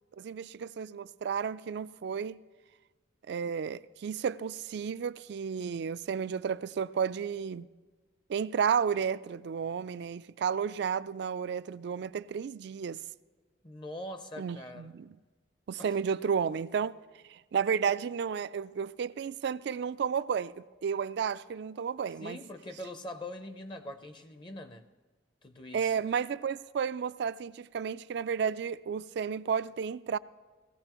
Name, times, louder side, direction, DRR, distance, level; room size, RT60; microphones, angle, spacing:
voice 1, 0.2-2.4 3.3-7.7 8.3-13.0 14.4-15.1 15.7-17.0 17.3-22.4 25.7-30.2, right 7 dB, 65° right, 0.3 m, -32 dB
voice 2, 13.6-14.9 15.8-15.9 22.2-24.8 25.4-25.9, left 1 dB, 25° left, 0.6 m, -43 dB
18.0 x 15.0 x 3.0 m
head